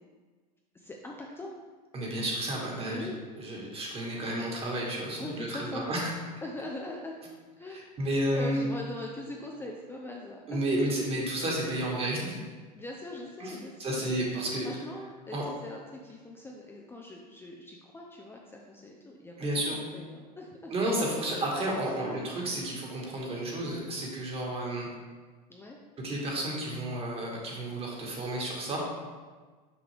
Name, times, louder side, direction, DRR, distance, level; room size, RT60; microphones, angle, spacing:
voice 1, 0.7-1.5 2.9-3.2 5.2-5.9 6.4-7.2 7.6-10.9 12.7-14.1 14.6-20.9 21.8-22.0 22.5-22.7 25.5-25.8, left 1 dB, 10° left, -1 dB, 0.5 m, -42 dB
voice 2, 1.9-3.1 3.4-6.1 7.7-8.7 10.5-12.4 13.4-14.7 15.3-15.4 19.4-19.8 20.7-24.9 26.0-28.8, right 1 dB, 25° right, -2 dB, 1.6 m, -31 dB
6.1 x 5.0 x 3.4 m, 1.4 s
supercardioid pair, 120°, 21 cm